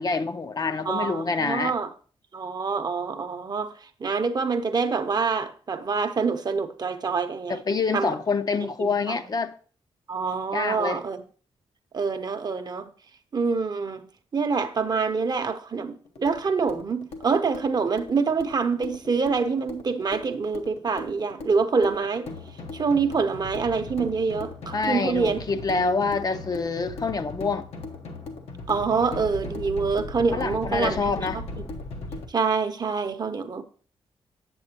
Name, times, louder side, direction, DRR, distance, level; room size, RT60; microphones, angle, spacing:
voice 1, 0.0-1.7 7.5-9.6 10.5-11.0 24.7-27.7 30.3-31.4, left 4 dB, 40° left, 0.4 m, -26 dB
voice 2, 0.8-1.9 2.3-7.6 7.9-8.1 8.8-9.2 10.1-11.2 11.9-12.9 13.3-14.1 14.3-22.3 22.7-25.4 28.7-31.4 32.3-33.6, right 5 dB, 40° right, 0.7 m, -26 dB
sound 1, 16.0-32.3, left 2 dB, 90° left, 0.9 m, -38 dB
7.7 x 7.3 x 2.8 m
cardioid pair, 80°, 10 cm